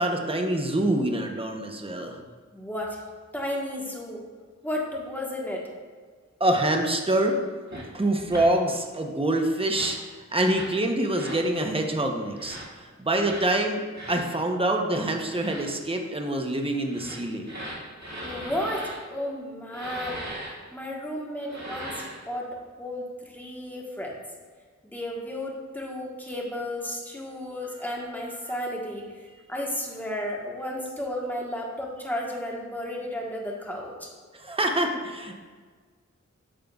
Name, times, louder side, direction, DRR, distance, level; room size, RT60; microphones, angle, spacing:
voice 1, 0.0-2.2 6.4-7.4 7.9-10.0 10.3-12.6 13.0-13.8 14.1-17.6 34.4-35.3, right 1 dB, 20° right, 3 dB, 0.7 m, -25 dB
voice 2, 2.5-3.0 3.3-4.2 4.6-5.7 18.2-20.2 20.7-24.2 24.8-34.1, left 1 dB, 5° left, -2 dB, 1.3 m, -33 dB
sound 1, 7.7-7.9 8.3-8.5 9.6-10.0 10.4-10.8 11.1-11.4 12.3-12.7 13.2-13.5 13.9-14.2 15.2-15.7 16.8-19.0 19.7-20.5 21.4-22.2, right 1 dB, 65° right, 1.9 m, -39 dB
8.8 x 6.6 x 2.3 m, 1.5 s
wide cardioid pair, 45°, 30 cm